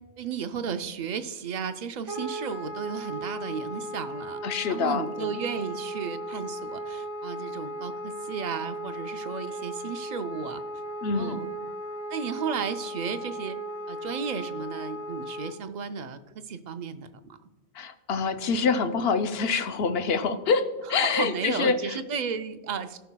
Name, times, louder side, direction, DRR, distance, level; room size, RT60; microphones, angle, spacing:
voice 1, 0.2-10.6 11.1-11.5 12.1-13.6 13.9-17.4 21.0-23.0, right 6 dB, 55° right, 9 dB, 0.5 m, -34 dB
Wind instrument woodwind instrument, 2.1-15.6, equal, 25° right, 0.8 m, -36 dB
voice 2, 4.4-5.4 11.0-11.4 17.7-22.0, left 5 dB, 65° left, 9 dB, 0.8 m, -26 dB
16.5 x 5.6 x 2.2 m, 1.2 s
omnidirectional pair, 1.1 m